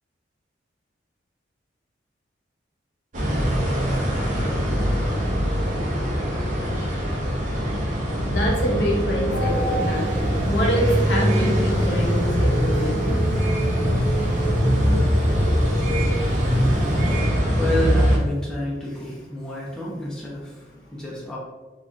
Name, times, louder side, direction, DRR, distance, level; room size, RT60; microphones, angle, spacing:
sound 1, 3.1-18.2, equal, 40° right, 0.6 m, -22 dB
voice 1, 8.2-10.1 10.5-13.2, equal, 65° left, -2 dB, 0.7 m, -25 dB
sound 2, 9.3-17.2, right 1 dB, 80° right, 0.7 m, -32 dB
voice 2, 16.9-21.4, left 1 dB, 5° left, -6 dB, 0.5 m, -30 dB
2.3 x 2.3 x 3.7 m, 1.2 s
head